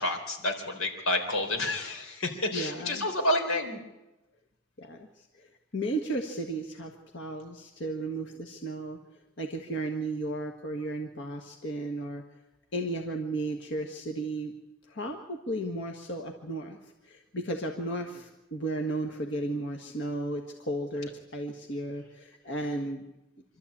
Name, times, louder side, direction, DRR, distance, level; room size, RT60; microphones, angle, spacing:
voice 1, 0.0-3.8, left 1 dB, 85° left, 4 dB, 4.0 m, -29 dB
voice 2, 2.5-3.1 4.8-9.0 9.4-12.2 12.7-14.5 14.9-16.8 17.0-23.0, right 2 dB, 55° left, 2 dB, 1.6 m, -34 dB
26.0 x 13.0 x 8.7 m, 0.99 s
head